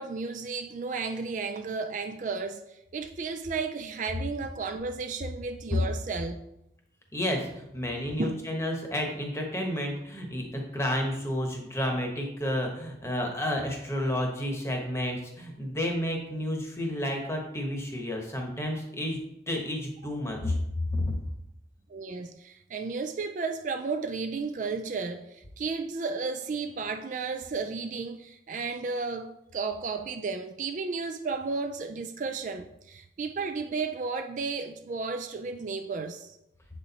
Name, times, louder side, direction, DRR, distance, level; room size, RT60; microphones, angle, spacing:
voice 1, 0.0-6.4 8.2-8.4 21.9-36.4, right 4 dB, 45° right, 0.3 m, -33 dB
voice 2, 7.1-19.2 19.5-20.5 20.9-21.2, left 1 dB, 15° left, 1.0 m, -31 dB
7.5 x 4.3 x 4.0 m
head